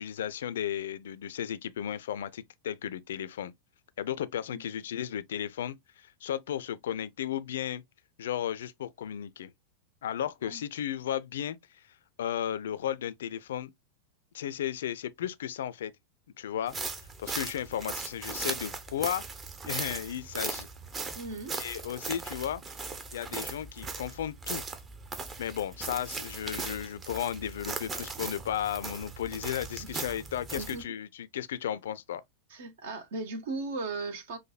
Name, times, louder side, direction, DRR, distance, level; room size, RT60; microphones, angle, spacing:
voice 1, 0.0-3.5 4.0-7.8 8.2-9.5 10.0-11.6 12.2-13.7 14.3-15.9 16.4-19.2 19.6-20.7 21.5-22.6 23.1-24.7 25.4-32.2, left 10 dB, 60° left, 0.4 m, -34 dB
sound 1, 16.7-30.8, right 4 dB, 20° right, 0.7 m, -38 dB
voice 2, 21.1-21.5 29.8-29.9 30.6-30.8 32.5-34.4, right 3 dB, 60° right, 1.1 m, -37 dB
5.8 x 2.6 x 2.2 m
figure-of-eight pair, 90°, 0 cm